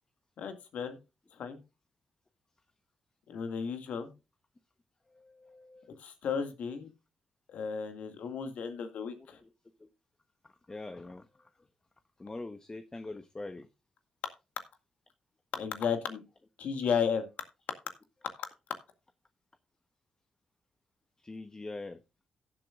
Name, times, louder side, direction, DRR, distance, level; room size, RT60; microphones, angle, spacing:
voice 1, 0.4-1.0 1.4-1.6 3.3-4.1 6.0-6.9 7.5-9.4 15.5-16.2 16.6-17.2, left 6 dB, 70° left, 8 dB, 2.0 m, -33 dB
voice 2, 5.2-5.9 9.4-9.5 10.7-11.2 12.2-13.7 21.2-22.0, left 2 dB, 25° left, 10 dB, 1.1 m, -43 dB
17.0 x 7.7 x 2.5 m, 0.28 s
hypercardioid pair, 40°, 3 cm